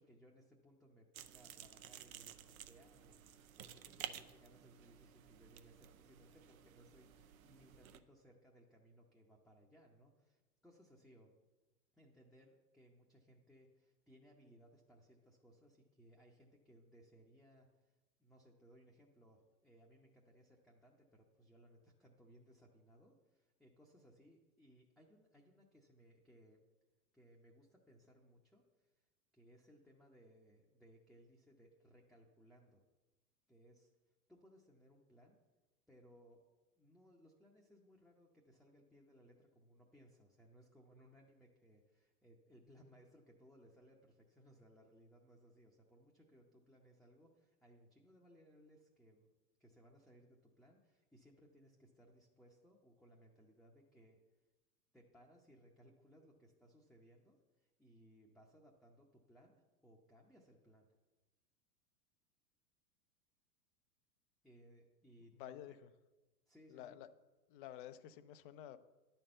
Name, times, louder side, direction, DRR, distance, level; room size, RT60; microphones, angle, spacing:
voice 1, 0.0-11.3 11.9-26.6 27.1-28.9 29.3-32.8 33.5-33.9 34.3-35.4 35.9-36.5 36.8-49.3 49.6-54.2 54.9-60.9 64.4-65.8 66.5-67.0, equal, ahead, -2 dB, 0.8 m, -65 dB
sound 1, 1.1-8.0, right 10 dB, 60° right, 0.7 m, -53 dB
voice 2, 65.3-65.9 66.7-67.1 67.5-68.8, left 11 dB, 35° left, 13 dB, 0.5 m, -51 dB
10.5 x 4.4 x 7.8 m, 1.1 s
figure-of-eight pair, 95°, 46 cm